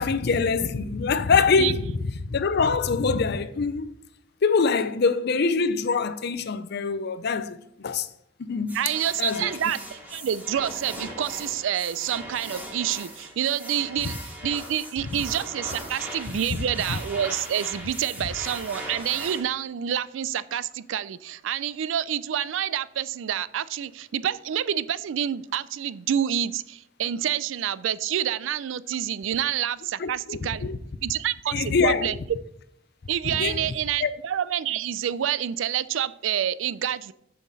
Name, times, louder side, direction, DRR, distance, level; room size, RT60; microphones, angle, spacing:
voice 1, 0.0-3.9 4.4-8.1 8.4-8.8 9.2-9.5 16.5-16.6 30.0-30.8 31.5-32.1 33.2-33.6 34.0-34.1, left 5 dB, 60° left, 0.5 m, -24 dB
sound 1, 8.7-19.4, right 1 dB, 10° right, 2.5 m, -39 dB
voice 2, 8.7-30.7 31.0-32.1 33.1-37.1, right 10 dB, 80° right, 0.4 m, -28 dB
7.2 x 5.7 x 4.0 m
head